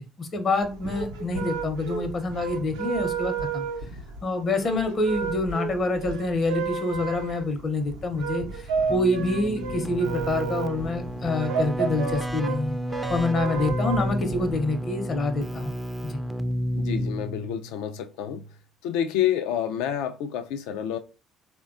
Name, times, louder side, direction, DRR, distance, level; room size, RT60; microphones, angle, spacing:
voice 1, 0.0-3.6 4.2-12.8 13.1-15.7 16.0-16.2, left 2 dB, 45° left, 0.7 m, -27 dB
sound 1, 0.6-14.6, right 5 dB, 85° right, 0.4 m, -32 dB
Keyboard (musical), 8.9-17.6, equal, 5° right, 0.3 m, -31 dB
voice 2, 16.8-18.5 18.8-21.0, left 10 dB, 75° left, 0.3 m, -28 dB
3.4 x 2.2 x 2.4 m
hypercardioid pair, 60°, 0 cm